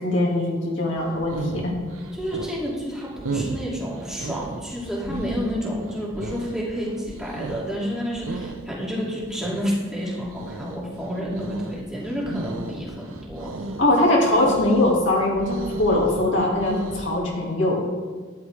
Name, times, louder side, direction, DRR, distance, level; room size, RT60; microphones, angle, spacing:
voice 1, 0.0-1.7 13.8-17.8, left 1 dB, 60° left, -3 dB, 2.3 m, -21 dB
sound 1, 1.0-17.2, right 2 dB, 85° right, 0.9 m, -35 dB
voice 2, 2.1-13.8, equal, 5° right, -6 dB, 2.5 m, -30 dB
12.5 x 11.0 x 3.5 m, 1.4 s
head